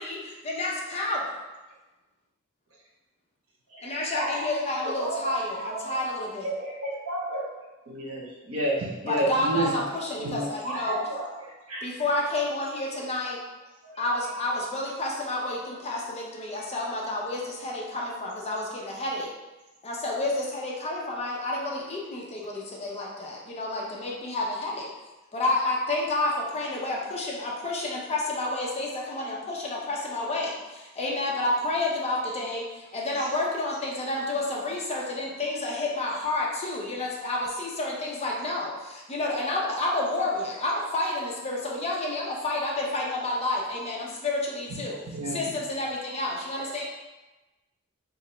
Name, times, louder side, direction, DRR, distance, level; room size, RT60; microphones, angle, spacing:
voice 1, 0.0-1.4 3.8-6.5 9.1-11.0 11.8-13.4 14.0-19.3 19.8-24.9 25.3-45.0 45.3-46.8, left 2 dB, 30° left, -2 dB, 0.6 m, -30 dB
voice 2, 3.8-4.5 4.8-5.3 5.6-6.0 6.4-7.5 7.9-9.3 10.4-11.8 13.8-14.0 33.2-33.3, right 1 dB, 70° right, -3 dB, 1.0 m, -32 dB
voice 3, 9.2-9.8 10.2-10.5 44.7-45.4, right 3 dB, 90° right, 0 dB, 0.6 m, -31 dB
2.8 x 2.4 x 4.2 m, 1.1 s
head